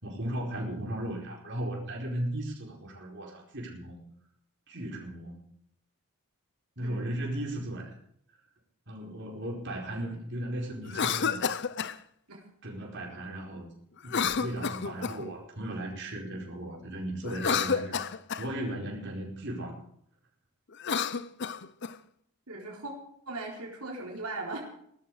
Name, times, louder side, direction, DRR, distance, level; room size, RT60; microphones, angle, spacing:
voice 1, 0.0-4.0 4.7-5.4 6.8-7.9 8.9-11.5 12.6-13.7 14.0-18.1 18.4-19.8, right 1 dB, 55° right, -1 dB, 4.7 m, -36 dB
voice 2, 6.8-7.1 9.9-10.0 12.3-12.4 13.1-13.2 22.5-22.9 23.3-24.8, right 2 dB, 85° right, -1 dB, 4.1 m, -39 dB
Cough, 10.8-12.0 14.0-15.3 17.2-18.5 20.7-21.9, left 6 dB, 50° left, 0.7 m, -30 dB
18.0 x 13.5 x 5.0 m, 0.69 s
head